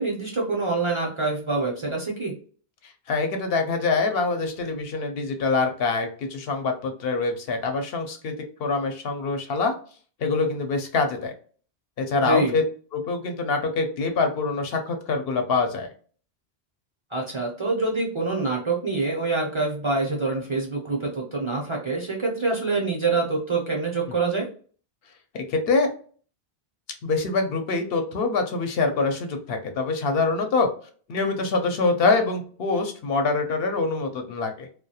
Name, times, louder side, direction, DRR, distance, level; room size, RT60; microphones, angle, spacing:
voice 1, 0.0-2.3 12.2-12.5 17.1-24.4, right 3 dB, 40° right, -2 dB, 0.5 m, -26 dB
voice 2, 2.8-8.3 8.6-9.7 10.2-11.3 12.0-12.6 12.9-15.9 24.1-24.2 25.3-25.9 27.0-30.7 31.1-34.7, left 3 dB, 70° left, 5 dB, 0.8 m, -25 dB
2.3 x 2.1 x 2.7 m, 0.43 s
omnidirectional pair, 1.1 m